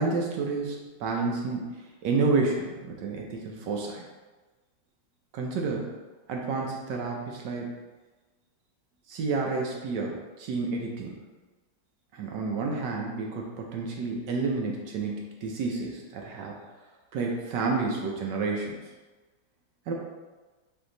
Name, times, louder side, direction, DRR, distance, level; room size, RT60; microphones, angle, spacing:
voice 1, 0.0-4.0 5.3-5.9 6.3-7.8 9.1-11.1 12.1-16.6 17.1-18.8 19.9-20.0, right 4 dB, 70° right, 0 dB, 1.1 m, -30 dB
4.4 x 2.7 x 3.8 m, 1.2 s
omnidirectional pair, 2.1 m